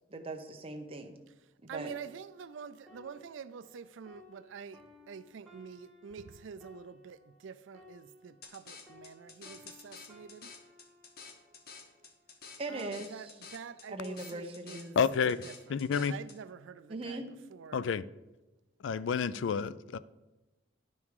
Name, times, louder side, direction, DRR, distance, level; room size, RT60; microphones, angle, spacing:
voice 1, 0.1-1.2 1.6-1.9 12.6-13.3 13.9-14.9 16.9-17.3, right 2 dB, 30° right, 0.9 m, -40 dB
sound 1, 1.7-8.6 8.9-12.4 13.1-13.3, left 2 dB, ahead, 1.7 m, -59 dB
voice 2, 1.7-4.8 5.1-10.5 12.7-15.0 15.4-17.8, right 6 dB, 70° right, 0.4 m, -47 dB
sound 2, 8.4-16.4, left 5 dB, 50° left, 1.0 m, -51 dB
voice 3, 15.0-15.4 15.7-16.1 17.7-18.0 18.8-20.0, left 6 dB, 70° left, 0.3 m, -29 dB
11.0 x 5.5 x 4.8 m
head